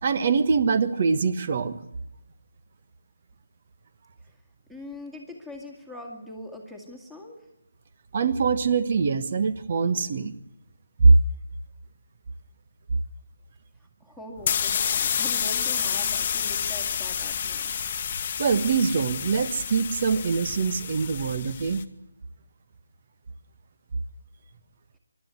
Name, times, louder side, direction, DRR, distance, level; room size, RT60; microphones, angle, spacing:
voice 1, 0.0-1.9 8.1-10.3 11.0-11.2 18.4-21.8, right 4 dB, 40° right, 12 dB, 1.4 m, -23 dB
voice 2, 4.7-7.5 14.0-17.8, left 1 dB, 5° right, 1 dB, 2.3 m, -42 dB
sound 1, 14.4-21.8, left 8 dB, 30° left, 1.2 m, -29 dB
23.5 x 12.5 x 9.5 m, 0.86 s
figure-of-eight pair, 160°, 0 cm